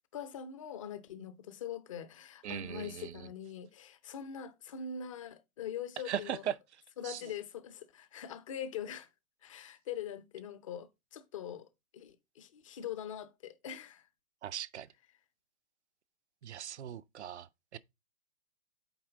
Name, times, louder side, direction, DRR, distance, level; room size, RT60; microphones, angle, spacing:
voice 1, 0.1-6.4 7.0-9.1 9.4-11.7 11.9-14.0, left 8 dB, 25° left, 0.4 m, -43 dB
voice 2, 2.4-3.3 6.1-6.5 7.0-7.2 14.4-14.9 16.4-17.8, right 10 dB, 55° right, 0.5 m, -39 dB
7.8 x 4.2 x 3.7 m
hypercardioid pair, 135°, 43 cm